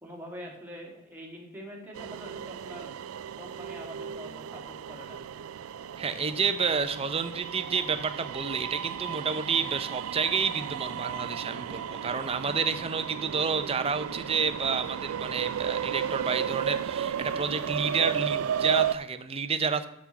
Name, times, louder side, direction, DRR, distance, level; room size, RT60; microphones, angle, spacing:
voice 1, 0.0-3.0 3.3-5.4, equal, 10° right, -2 dB, 1.8 m, -44 dB
sound 1, 1.9-19.0, right 8 dB, 85° right, 0.3 m, -34 dB
voice 2, 6.0-19.9, right 5 dB, 30° right, 10 dB, 0.6 m, -29 dB
6.3 x 5.9 x 7.0 m, 0.88 s
head